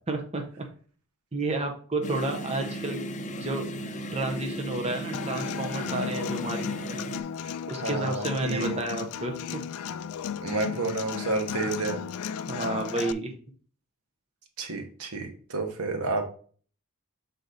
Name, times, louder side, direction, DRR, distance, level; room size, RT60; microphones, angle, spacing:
voice 1, 0.1-0.6 1.3-3.0 3.4-7.0 7.7-9.6 12.5-13.3, right 2 dB, 30° right, 3 dB, 0.8 m, -31 dB
sound 1, 2.0-7.2, right 1 dB, 35° left, 0.6 m, -35 dB
Human voice / Acoustic guitar, 5.1-13.1, left 8 dB, 75° left, 0.4 m, -35 dB
voice 2, 7.8-8.8 10.4-12.1 14.6-16.2, right 3 dB, 85° right, 5 dB, 1.1 m, -30 dB
6.5 x 4.1 x 3.9 m, 0.43 s
head